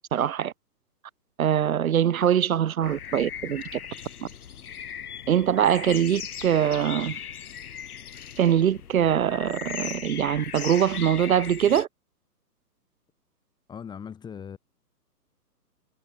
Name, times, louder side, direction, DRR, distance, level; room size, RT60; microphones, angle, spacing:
voice 1, 0.1-0.5 1.4-3.8 5.3-7.2 8.4-11.9, right 9 dB, 55° right, 1.5 m, -23 dB
sound 1, 2.8-11.9, left 8 dB, 65° left, 1.6 m, -38 dB
voice 2, 13.7-14.6, left 7 dB, 10° left, 1.6 m, -39 dB
figure-of-eight pair, 135°, 48 cm